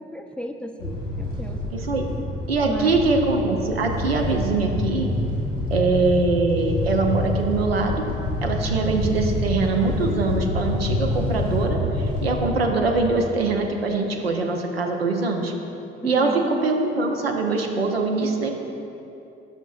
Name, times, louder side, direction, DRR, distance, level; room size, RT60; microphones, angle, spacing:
voice 1, 0.0-1.6 2.6-3.0 16.0-16.4, equal, 5° left, 5 dB, 0.4 m, -32 dB
sound 1, 0.8-13.2, left 1 dB, 90° left, 1.6 m, -27 dB
voice 2, 1.7-2.1 2.5-5.1 5.7-8.0 8.4-15.5 16.0-16.3 16.6-18.6, right 3 dB, 90° right, 3 dB, 0.5 m, -23 dB
12.0 x 5.6 x 2.3 m, 2.8 s
figure-of-eight pair, 45°, 30 cm